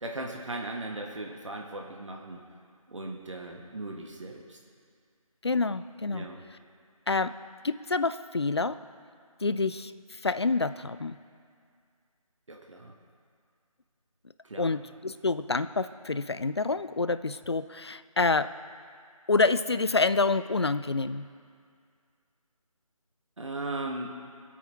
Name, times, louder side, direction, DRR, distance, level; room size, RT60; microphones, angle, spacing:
voice 1, 0.0-2.4 2.9-4.6 6.1-6.4 12.5-12.9 14.4-14.8 23.4-24.1, right 2 dB, 55° right, 1 dB, 1.4 m, -37 dB
voice 2, 5.4-6.3 7.1-7.3 7.6-8.8 9.4-11.2 14.6-18.5 19.3-21.3, left 3 dB, 45° left, 14 dB, 0.4 m, -27 dB
24.5 x 8.5 x 3.5 m, 2.2 s
figure-of-eight pair, 160°, 19 cm